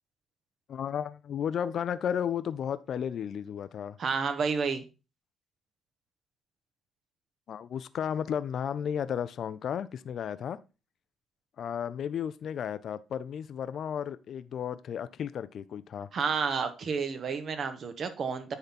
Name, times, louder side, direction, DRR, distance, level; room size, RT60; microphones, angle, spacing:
voice 1, 0.7-4.0 7.5-10.6 11.6-16.1, left 8 dB, 65° left, 0.5 m, -33 dB
voice 2, 4.0-4.8 16.1-18.5, right 5 dB, 55° right, 1.3 m, -30 dB
9.8 x 4.0 x 4.2 m
cardioid pair, 90°, 0 cm